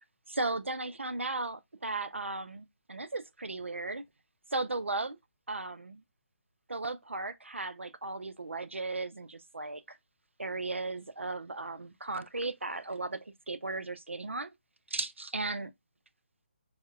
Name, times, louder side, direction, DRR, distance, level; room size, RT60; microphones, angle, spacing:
voice 1, 0.3-4.0 4.5-5.2 5.5-6.0 6.7-10.0 10.4-14.5 14.9-15.7, right 3 dB, 90° right, 0.4 m, -36 dB
5.3 x 2.0 x 2.3 m
figure-of-eight pair, 145°, 6 cm